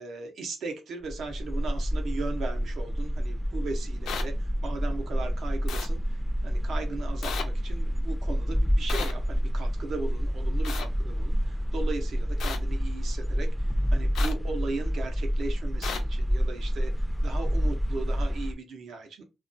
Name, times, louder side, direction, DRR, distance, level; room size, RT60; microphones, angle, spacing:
voice 1, 0.0-19.2, right 3 dB, 70° right, 0.6 m, -38 dB
sound 1, 1.0-18.5, equal, ahead, 0.3 m, -28 dB
sound 2, 4.1-4.2 5.7-5.9 7.2-7.4 8.9-9.1 10.6-10.9 12.4-12.6 14.2-14.3 15.8-16.0, left 7 dB, 90° left, 0.4 m, -33 dB
2.2 x 2.2 x 2.5 m
cardioid pair, 100°, 0 cm